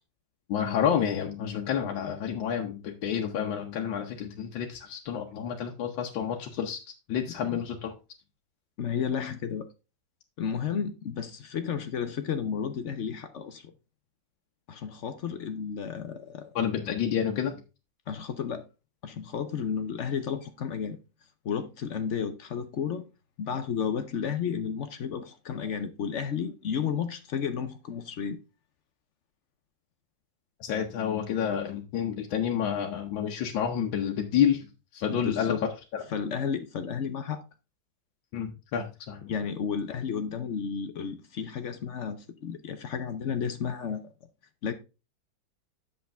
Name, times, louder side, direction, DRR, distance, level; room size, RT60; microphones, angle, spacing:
voice 1, 0.5-6.8 7.1-7.9 16.5-17.6 30.6-34.7 34.9-35.5 35.9-36.0 38.3-39.3, left 8 dB, 80° left, 1.6 m, -29 dB
voice 2, 7.3-7.6 8.8-9.7 10.4-13.7 14.7-16.5 18.1-18.6 19.0-21.0 21.4-23.0 23.4-28.4 35.1-35.6 36.1-37.4 39.3-44.0 44.6-44.7, left 7 dB, 65° left, 0.7 m, -32 dB
7.9 x 6.8 x 3.4 m
omnidirectional pair, 2.1 m